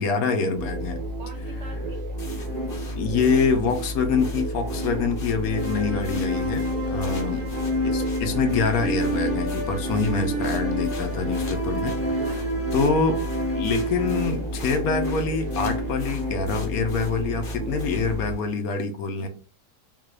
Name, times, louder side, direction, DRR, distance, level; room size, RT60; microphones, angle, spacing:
voice 1, 0.0-1.0 2.9-7.4 7.8-12.4 12.7-13.2 13.5-19.3, left 5 dB, 75° left, 7 dB, 1.0 m, -25 dB
sound 1, 0.5-18.3, right 1 dB, 85° right, 0.3 m, -32 dB
voice 2, 1.2-2.0 7.0-7.5 12.2-12.8 19.2-19.3, right 3 dB, 60° right, 3 dB, 0.9 m, -45 dB
sound 2, 2.2-18.4, left 3 dB, 50° left, 0.7 m, -45 dB
sound 3, 2.4-16.3, equal, 15° left, 0.4 m, -30 dB
3.6 x 2.3 x 3.1 m, 0.37 s
omnidirectional pair, 1.6 m